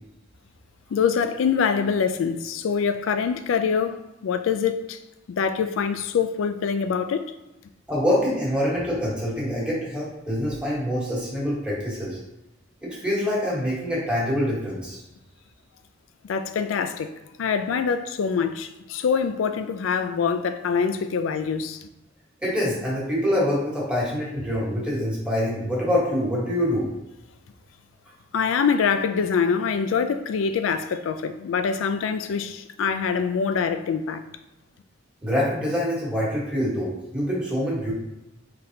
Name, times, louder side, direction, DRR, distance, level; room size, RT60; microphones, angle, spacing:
voice 1, 0.9-4.0 4.2-5.0 5.3-7.3 16.2-17.1 17.4-21.9 28.3-34.2, left 6 dB, 80° left, 0.3 m, -24 dB
voice 2, 7.9-12.2 12.8-15.0 22.4-26.9 35.2-37.9, equal, 5° right, 1.3 m, -25 dB
4.0 x 3.2 x 2.8 m
head